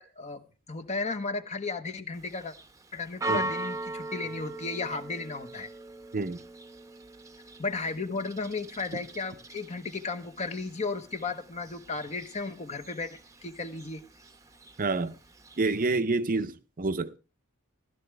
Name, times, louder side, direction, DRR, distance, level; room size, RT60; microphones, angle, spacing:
voice 1, 0.0-2.5 2.9-5.7 7.6-14.0, left 3 dB, 30° left, 1.1 m, -34 dB
Church bell, 2.1-16.0, right 2 dB, 15° right, 0.9 m, -41 dB
voice 2, 14.8-15.2 15.6-17.2, right 3 dB, 40° right, 0.7 m, -28 dB
15.0 x 12.5 x 3.4 m
head